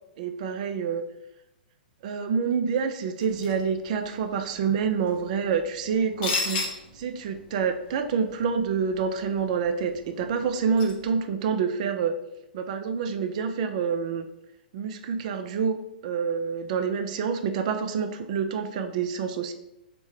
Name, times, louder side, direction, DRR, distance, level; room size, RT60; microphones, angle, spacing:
voice 1, 0.2-1.0 2.0-12.1 12.5-14.3 14.7-15.8 16.0-19.5, right 6 dB, 50° right, 7 dB, 0.3 m, -27 dB
sound 1, 3.2-11.2, left 3 dB, 45° left, 0.8 m, -38 dB
3.4 x 2.1 x 3.1 m, 0.86 s
figure-of-eight pair, 110°, 5 cm